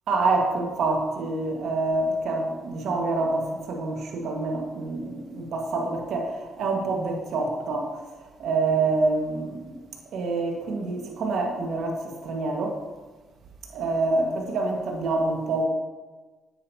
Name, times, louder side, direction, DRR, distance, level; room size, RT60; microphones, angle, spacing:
voice 1, 0.1-8.0 8.4-9.8 10.1-12.8 13.7-15.6, right 3 dB, 70° right, 1 dB, 1.7 m, -26 dB
9.2 x 9.1 x 2.9 m, 1.3 s
cardioid pair, 90°, 0 cm